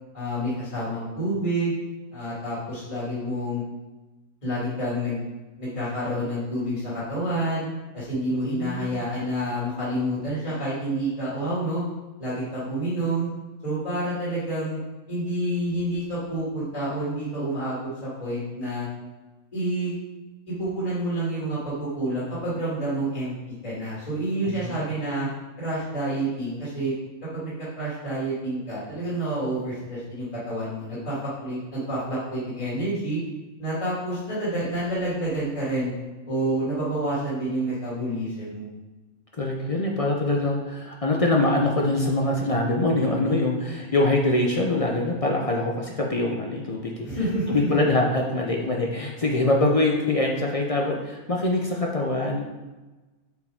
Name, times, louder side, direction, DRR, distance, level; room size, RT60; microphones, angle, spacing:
voice 1, 0.1-1.7 2.1-3.6 4.4-5.2 5.6-7.7 7.9-11.8 12.2-13.3 13.6-14.8 15.1-18.9 19.5-20.0 20.5-23.4 23.6-25.3 25.6-26.9 27.3-33.2 33.6-35.9 36.3-38.7 47.0-47.9, right 1 dB, 25° left, -9 dB, 2.2 m, -28 dB
voice 2, 8.3-8.9 24.5-25.0 39.4-47.1 47.5-52.4, left 2 dB, 55° left, 0 dB, 0.3 m, -24 dB
7.7 x 4.8 x 3.5 m, 1.2 s
omnidirectional pair, 1.6 m